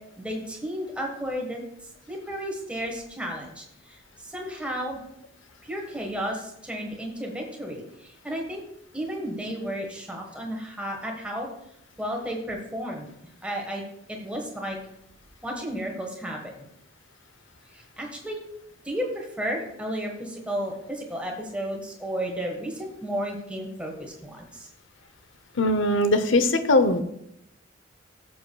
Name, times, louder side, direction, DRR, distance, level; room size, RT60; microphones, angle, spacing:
voice 1, 0.2-1.6 2.1-4.0 4.2-5.0 5.6-8.6 8.9-11.5 12.0-13.1 13.4-13.8 14.1-14.8 15.4-16.6 17.7-18.4 18.8-24.7, equal, 5° right, 0 dB, 1.4 m, -33 dB
voice 2, 25.6-27.0, left 2 dB, 70° left, 10 dB, 0.8 m, -20 dB
13.5 x 7.1 x 2.3 m, 0.77 s
head